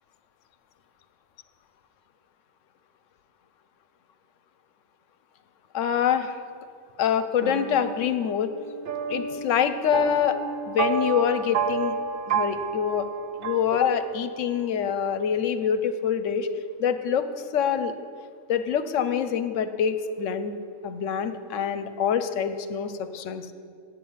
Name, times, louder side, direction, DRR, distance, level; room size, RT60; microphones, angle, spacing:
voice 1, 5.7-6.4 7.0-8.5 9.1-10.4 10.7-12.0 12.3-13.1 13.4-16.5 16.8-17.3 17.5-17.9 18.5-20.6 20.8-23.5, left 8 dB, 75° left, 11 dB, 1.0 m, -25 dB
sound 1, 7.4-14.4, right 6 dB, 55° right, 0.7 m, -31 dB
8.5 x 8.2 x 7.1 m, 2.2 s
omnidirectional pair, 1.3 m